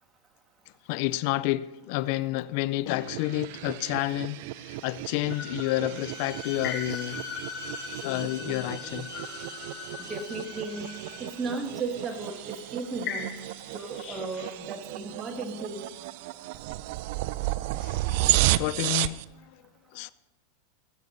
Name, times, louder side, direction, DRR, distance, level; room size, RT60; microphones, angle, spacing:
voice 1, 0.8-7.3 7.6-9.1 17.7-19.6 19.9-20.1, left 17 dB, 60° left, 0.4 m, -30 dB
sound 1, 2.9-19.2, right 17 dB, 60° right, 0.4 m, -33 dB
sound 2, 5.1-14.6, left 7 dB, 40° left, 3.5 m, -43 dB
Bowed string instrument, 5.9-11.4, left 6 dB, 25° left, 3.2 m, -41 dB
voice 2, 10.0-10.9 11.2-13.4 13.7-15.8, right 3 dB, 25° right, 1.9 m, -35 dB
17.5 x 8.4 x 4.0 m
hypercardioid pair, 120°, 0 cm